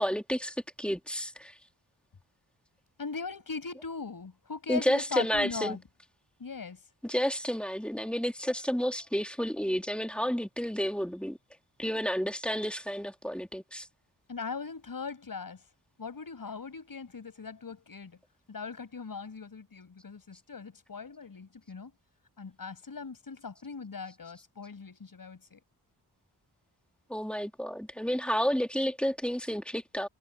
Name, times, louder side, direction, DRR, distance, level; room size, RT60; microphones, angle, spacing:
voice 1, 0.0-1.5 4.7-5.8 7.0-11.4 11.8-13.9 27.1-30.1, equal, 5° left, 2.1 m, -31 dB
voice 2, 3.0-5.8 6.4-6.8 14.3-15.6 16.0-18.2 18.5-21.9 22.4-25.6, left 5 dB, 60° left, 5.6 m, -39 dB
wide cardioid pair, 110°, 38 cm